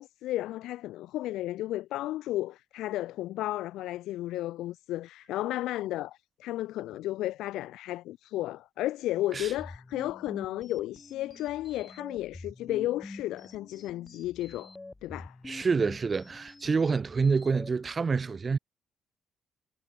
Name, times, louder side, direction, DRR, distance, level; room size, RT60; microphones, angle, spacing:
voice 1, 0.0-14.7 15.0-15.4, left 15 dB, 90° left, 0.6 m, -33 dB
sound 1, 9.4-17.7, left 2 dB, 20° left, 2.2 m, -47 dB
voice 2, 15.4-18.6, right 5 dB, 35° right, 0.4 m, -27 dB
cardioid pair, 90°, 0 cm